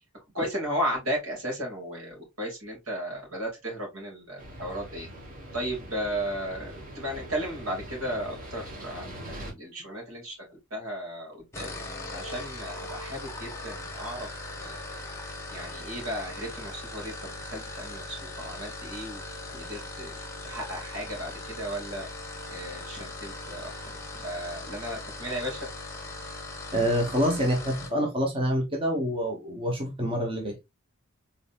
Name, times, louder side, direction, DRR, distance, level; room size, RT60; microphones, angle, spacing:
voice 1, 0.3-5.1 5.5-11.7 12.1-14.3 14.6-15.0 15.5-19.2 19.5-20.2 20.4-22.1 22.5-23.7 24.2-25.6, equal, 75° right, 2.6 m, -35 dB
sound 1, 4.4-9.5, right 1 dB, 40° right, 1.7 m, -42 dB
sound 2, 11.4-28.0, left 2 dB, 15° left, 1.0 m, -39 dB
voice 2, 26.7-30.6, equal, 25° right, 0.9 m, -27 dB
4.0 x 3.9 x 2.5 m
head